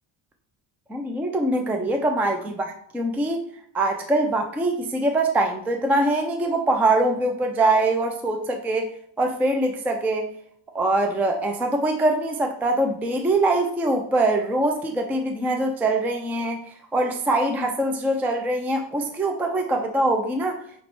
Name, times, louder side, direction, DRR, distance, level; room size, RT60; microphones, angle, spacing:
voice 1, 0.9-3.4 3.7-8.9 9.2-10.3 10.7-16.6 16.9-20.6, right 2 dB, 5° right, 4 dB, 0.3 m, -23 dB
8.4 x 3.0 x 4.4 m, 0.66 s
cardioid pair, 175°, 49 cm